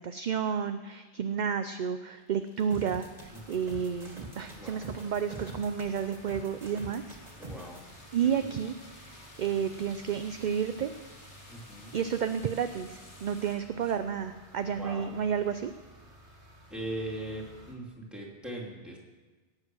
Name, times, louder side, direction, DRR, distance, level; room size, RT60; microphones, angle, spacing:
voice 1, 0.0-7.2 8.1-8.7 9.1-10.9 11.9-15.7, right 7 dB, 55° right, 9 dB, 0.6 m, -31 dB
sound 1, 2.1-13.6, left 1 dB, 85° left, 2.8 m, -54 dB
sound 2, 2.7-7.8, right 1 dB, 35° right, 2.3 m, -45 dB
voice 2, 3.3-3.8 4.5-4.9 7.4-7.8 8.2-8.6 11.5-12.0 13.8-13.9 14.6-15.1 16.7-19.0, right 1 dB, ahead, -3 dB, 2.8 m, -41 dB
sound 3, 3.3-17.8, equal, 85° right, 2.7 m, -55 dB
18.0 x 7.7 x 6.2 m, 1.3 s
omnidirectional pair, 1.2 m